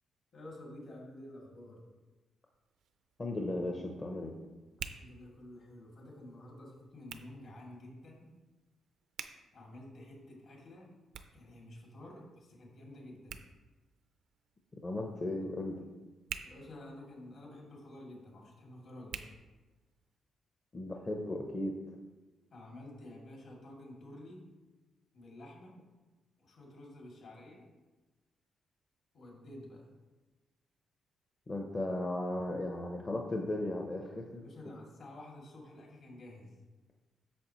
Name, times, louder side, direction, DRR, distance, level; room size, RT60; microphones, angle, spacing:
voice 1, 0.3-1.8 4.8-8.3 9.5-10.9 11.3-13.4 15.4-15.5 16.4-19.2 22.5-24.4 25.1-25.8 26.4-27.7 29.1-29.9 34.2-36.6, left 1 dB, 60° left, -2 dB, 2.4 m, -50 dB
Hands, 2.5-20.2, right 8 dB, 85° right, 0.4 m, -52 dB
voice 2, 3.2-4.3 14.8-15.8 20.7-21.7 31.5-34.4, left 1 dB, 25° left, 1 dB, 0.6 m, -36 dB
8.4 x 6.6 x 3.0 m, 1.2 s
cardioid pair, 145°, 0 cm